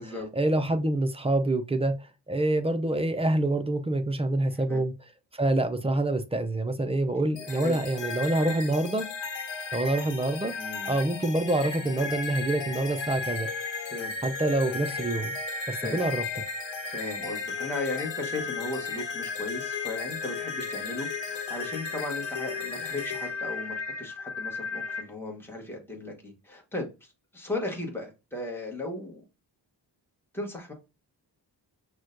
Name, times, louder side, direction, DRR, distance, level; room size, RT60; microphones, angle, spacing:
voice 1, 0.3-4.9 5.3-9.1 9.7-10.5 10.8-13.5 14.2-15.3 15.7-16.2, right 2 dB, 15° right, 0.4 m, -26 dB
voice 2, 4.5-4.8 7.5-7.8 8.4-8.5 10.6-11.0 13.8-14.1 15.8-16.0 16.8-29.2 30.3-30.7, left 2 dB, 5° left, 1.0 m, -36 dB
sound 1, 7.4-25.0, left 4 dB, 85° left, 1.0 m, -34 dB
6.0 x 2.2 x 2.5 m
wide cardioid pair, 100°, 42 cm